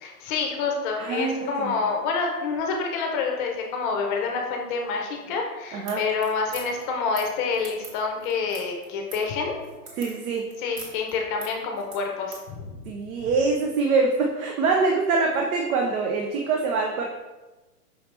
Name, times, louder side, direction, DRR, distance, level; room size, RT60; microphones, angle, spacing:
voice 1, 0.0-9.6 10.6-12.8, left 4 dB, 30° left, 2 dB, 0.7 m, -27 dB
voice 2, 1.0-1.8 5.7-6.0 10.0-10.5 12.9-17.1, right 4 dB, 60° right, 1 dB, 0.7 m, -24 dB
sound 1, 5.8-12.5, right 3 dB, 40° right, 1.4 m, -43 dB
5.5 x 2.8 x 3.3 m, 1.1 s
hypercardioid pair, 130°, 47 cm